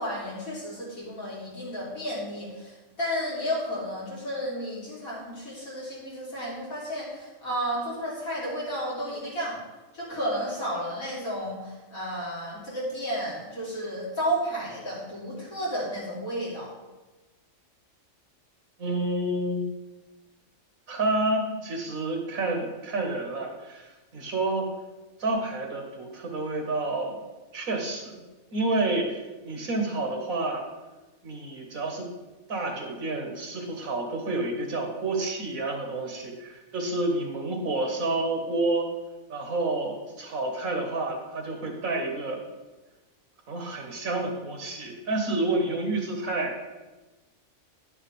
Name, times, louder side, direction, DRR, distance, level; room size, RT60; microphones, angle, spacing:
voice 1, 0.0-9.6 9.9-16.7, equal, 80° left, -7 dB, 3.7 m, -32 dB
voice 2, 18.8-19.6 20.9-24.7 25.2-27.2 27.5-28.2 28.5-29.2 29.5-30.6 31.2-32.1 32.5-38.9 39.3-42.4 43.5-46.6, right 2 dB, 85° right, 2 dB, 1.8 m, -29 dB
10.5 x 7.3 x 3.4 m, 1.2 s
omnidirectional pair, 1.4 m